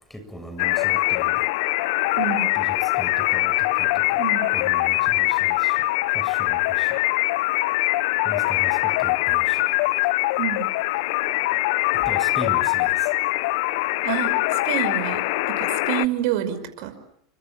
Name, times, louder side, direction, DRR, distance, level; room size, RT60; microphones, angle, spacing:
voice 1, 0.1-1.5 2.5-4.3 4.5-5.9 6.1-7.0 8.2-9.6 12.0-13.1, equal, 5° left, 7.3 m, -38 dB
sound 1, 0.6-16.1, left 20 dB, 65° left, 1.1 m, -22 dB
voice 2, 2.2-2.5 4.2-4.5 10.4-10.7 14.0-14.4 14.6-16.9, right 11 dB, 60° right, 5.4 m, -28 dB
29.5 x 25.5 x 7.5 m
hypercardioid pair, 95°, 3 cm